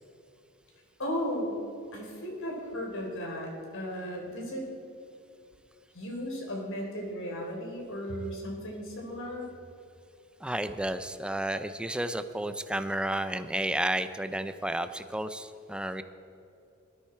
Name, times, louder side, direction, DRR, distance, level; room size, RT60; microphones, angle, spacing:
voice 1, 1.0-1.6 1.9-4.6 5.9-9.4, equal, 60° left, 0 dB, 3.8 m, -35 dB
voice 2, 10.4-16.0, right 1 dB, 5° right, 10 dB, 0.6 m, -32 dB
19.0 x 13.0 x 4.5 m, 2.8 s
head